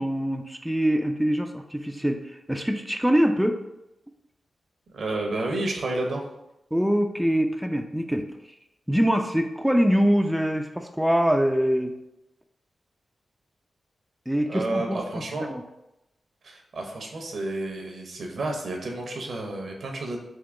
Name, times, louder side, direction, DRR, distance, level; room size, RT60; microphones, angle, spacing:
voice 1, 0.0-3.6 6.7-8.2 8.9-11.9 14.3-15.0 15.5-15.6, equal, 5° right, 4 dB, 0.4 m, -24 dB
voice 2, 4.9-6.2 14.5-15.5 16.4-20.2, right 2 dB, 70° right, 2 dB, 0.8 m, -30 dB
3.6 x 2.8 x 3.8 m, 0.89 s
supercardioid pair, 40°, 0 cm